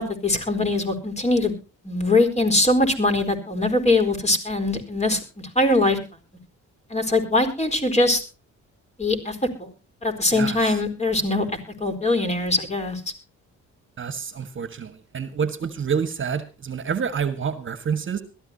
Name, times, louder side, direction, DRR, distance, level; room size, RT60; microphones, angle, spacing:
voice 1, 0.0-1.5 1.8-5.2 5.6-6.0 6.9-8.2 9.0-9.7 10.0-11.4 11.8-13.0, left 2 dB, 20° left, 6 dB, 4.3 m, -22 dB
voice 2, 14.0-18.2, right 6 dB, 40° right, 12 dB, 1.6 m, -28 dB
22.0 x 13.5 x 2.8 m, 0.32 s
cardioid pair, 90°, 30 cm